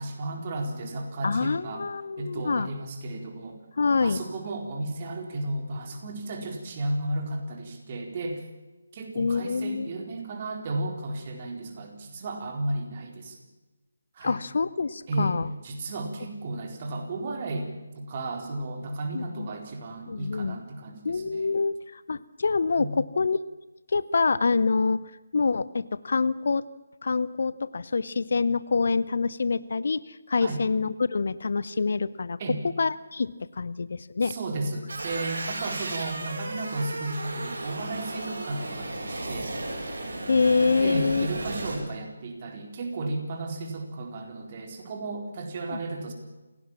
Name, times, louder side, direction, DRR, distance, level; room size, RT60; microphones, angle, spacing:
voice 1, 0.0-1.9 2.2-3.6 4.0-8.4 8.9-13.4 14.1-14.4 15.1-15.4 15.6-21.5 22.7-23.0 30.4-30.6 32.4-32.6 34.2-39.6 40.8-46.1, right 2 dB, 30° right, 3 dB, 4.1 m, -34 dB
voice 2, 1.2-2.7 3.8-4.2 9.2-9.9 14.2-15.5 19.1-19.5 20.1-20.6 21.0-23.4 23.9-25.0 25.3-26.6 27.0-32.4 32.8-34.3 40.3-41.3 45.7-45.8, left 4 dB, 50° left, 17 dB, 0.8 m, -26 dB
sound 1, 34.9-41.8, right 2 dB, 55° right, 7.5 m, -34 dB
28.0 x 17.5 x 7.4 m, 1.1 s
figure-of-eight pair, 150°, 0 cm